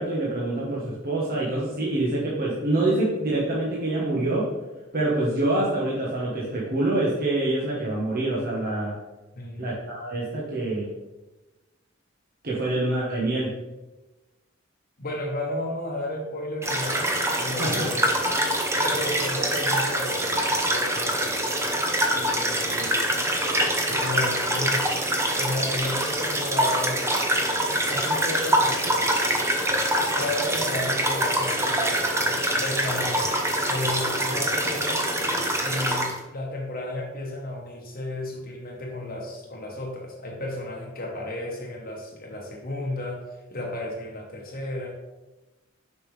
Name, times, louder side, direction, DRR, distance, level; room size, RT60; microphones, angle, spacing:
voice 1, 0.0-4.4 4.9-8.9 9.6-10.9 12.4-13.5 17.6-17.9, right 2 dB, 50° right, -5 dB, 1.2 m, -26 dB
voice 2, 9.3-9.7 15.0-18.3 18.8-21.6 22.1-23.0 23.9-24.9 25.4-27.2 27.8-29.1 29.8-33.4 33.7-35.0 35.6-44.9, left 1 dB, 45° left, -1 dB, 1.1 m, -33 dB
sound 1, 16.6-36.2, right 1 dB, 15° right, 0.8 m, -25 dB
6.7 x 5.6 x 3.3 m, 1.1 s
head